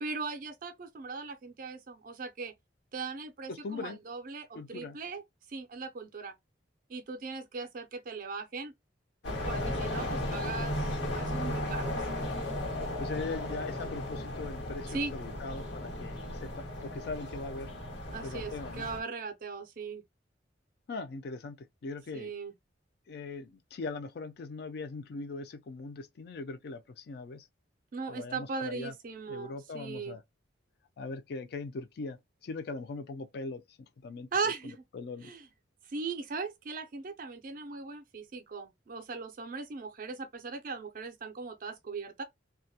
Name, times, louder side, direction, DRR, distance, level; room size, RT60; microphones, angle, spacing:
voice 1, 0.0-2.5 2.9-5.2 5.5-6.3 6.9-8.7 9.4-12.1 14.9-15.1 18.1-20.0 22.1-22.5 27.9-30.2 34.3-34.8 35.2-35.5 35.8-42.2, right 4 dB, 45° right, 0.4 m, -38 dB
voice 2, 3.5-4.0 4.5-5.0 13.0-17.7 18.2-18.9 20.9-22.3 23.1-27.5 28.1-28.9 29.3-30.2 31.0-33.8 34.0-34.3 34.6-35.3, left 3 dB, 60° left, 0.4 m, -40 dB
sound 1, 9.2-19.0, left 1 dB, 80° left, 1.1 m, -35 dB
2.3 x 2.0 x 2.6 m
head